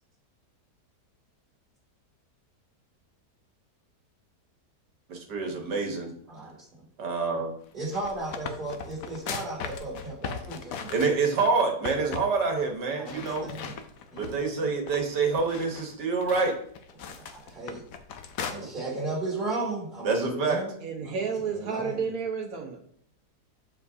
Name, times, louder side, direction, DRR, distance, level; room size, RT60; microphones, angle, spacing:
voice 1, 5.1-6.1 7.0-7.5 10.9-13.5 14.1-16.5 20.0-20.6, right 4 dB, 80° right, 2 dB, 1.9 m, -27 dB
sound 1, 7.7-11.5 11.8-12.3 12.6-12.7 13.1-14.5 14.9-18.5, left 7 dB, 65° left, 1.0 m, -38 dB
voice 2, 7.7-10.9 13.0-13.8 14.1-14.7 17.0-17.8 18.5-20.7 21.0-22.0, right 2 dB, 30° right, -6 dB, 3.3 m, -35 dB
voice 3, 20.8-22.8, right 6 dB, 60° right, 3 dB, 1.6 m, -31 dB
7.3 x 6.6 x 2.8 m, 0.64 s
omnidirectional pair, 1.8 m